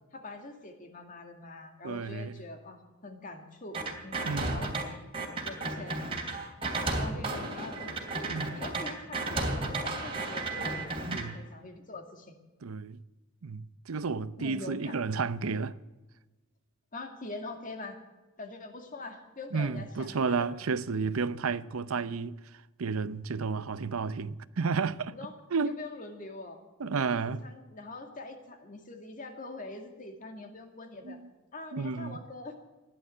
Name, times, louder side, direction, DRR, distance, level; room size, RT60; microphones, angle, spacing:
voice 1, 0.1-4.7 5.4-6.1 7.0-10.8 11.1-12.4 14.4-14.9 16.9-18.0 18.4-20.4 25.1-25.3 25.6-26.6 26.9-31.2 31.5-32.6, left 2 dB, 40° left, 2.2 m, -44 dB
voice 2, 1.8-2.4 4.2-4.7 8.3-8.6 11.1-11.4 12.6-13.0 13.4-15.8 19.5-25.2 25.5-25.7 26.8-27.4 31.0-31.2 31.7-32.2, right 4 dB, 85° right, 0.6 m, -32 dB
sound 1, 3.7-4.8 5.1-11.2, right 2 dB, 25° right, 2.8 m, -33 dB
16.0 x 11.0 x 7.7 m
head